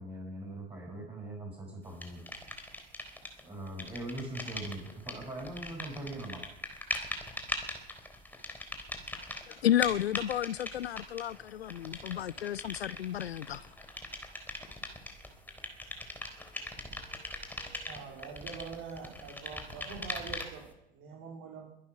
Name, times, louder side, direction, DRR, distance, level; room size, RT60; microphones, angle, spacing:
voice 1, 0.0-2.2 3.4-6.4, right 1 dB, 20° right, 6.3 m, -41 dB
sound 1, 2.0-3.4 3.7-20.7, left 1 dB, 5° left, 3.6 m, -41 dB
voice 2, 9.2-13.6, left 11 dB, 80° left, 0.6 m, -32 dB
voice 3, 17.9-21.7, right 5 dB, 45° right, 3.9 m, -44 dB
23.0 x 10.0 x 6.1 m
figure-of-eight pair, 85°, 31 cm